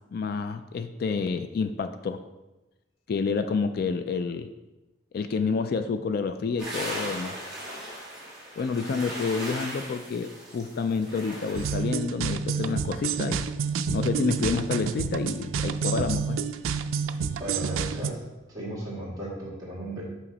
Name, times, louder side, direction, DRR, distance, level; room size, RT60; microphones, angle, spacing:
voice 1, 0.1-2.2 3.1-4.5 5.1-7.4 8.6-13.5 13.9-16.4, left 5 dB, 50° left, 10 dB, 0.3 m, -29 dB
sound 1, 6.6-11.8, right 1 dB, 5° right, 2.3 m, -38 dB
sound 2, 11.6-18.1, right 6 dB, 80° right, 0.4 m, -29 dB
voice 2, 17.4-18.2 18.5-20.0, right 1 dB, 20° right, -6 dB, 2.0 m, -35 dB
5.9 x 5.7 x 4.0 m, 1.0 s
head